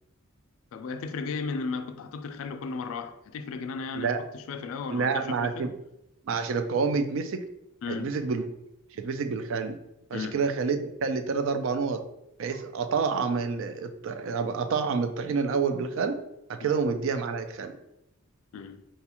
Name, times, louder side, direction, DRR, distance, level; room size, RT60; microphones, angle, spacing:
voice 1, 0.7-5.7 7.8-8.2 10.1-10.4 16.6-16.8 18.5-18.8, left 4 dB, 70° left, 0.3 m, -35 dB
voice 2, 4.9-5.7 6.2-7.4 7.9-8.4 9.0-9.8 10.1-12.0 12.4-16.2 16.5-17.8, right 5 dB, 60° right, 0.3 m, -28 dB
4.1 x 2.3 x 2.9 m
head